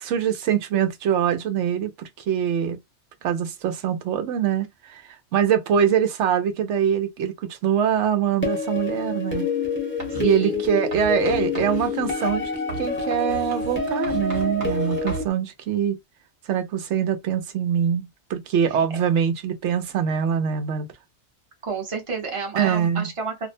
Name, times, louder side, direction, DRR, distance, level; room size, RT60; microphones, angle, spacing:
voice 1, 0.0-2.8 3.2-5.0 5.3-9.5 10.2-12.5 12.8-16.0 16.5-20.9 22.6-23.1, right 8 dB, 90° right, 0.9 m, -23 dB
sound 1, 8.4-15.2, left 4 dB, 10° left, 0.7 m, -27 dB
Writing, 10.0-10.4 10.9-15.3, right 3 dB, 60° right, 1.1 m, -37 dB
voice 2, 10.1-10.6 18.7-18.8 21.6-23.5, right 5 dB, 30° right, 0.8 m, -31 dB
2.5 x 2.1 x 2.5 m
omnidirectional pair, 1.2 m